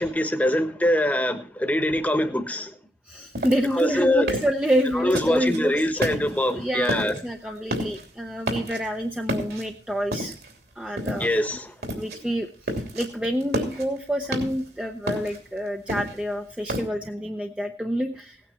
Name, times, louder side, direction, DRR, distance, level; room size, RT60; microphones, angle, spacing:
voice 1, 0.0-2.7 3.7-4.3 4.9-7.2 11.2-12.1, left 1 dB, 10° left, 1.1 m, -24 dB
voice 2, 3.0-5.8 6.5-10.3 10.8-11.3 11.9-18.4, equal, 5° right, 0.7 m, -28 dB
sound 1, 3.3-5.6 6.0-6.5 6.8-7.3 7.6-8.1 8.4-9.0 9.3-10.6 11.0-11.5 11.8-12.2 12.5-13.1 13.4-14.7 15.1-16.8, equal, 65° right, 3.1 m, -31 dB
17.5 x 9.2 x 4.4 m
head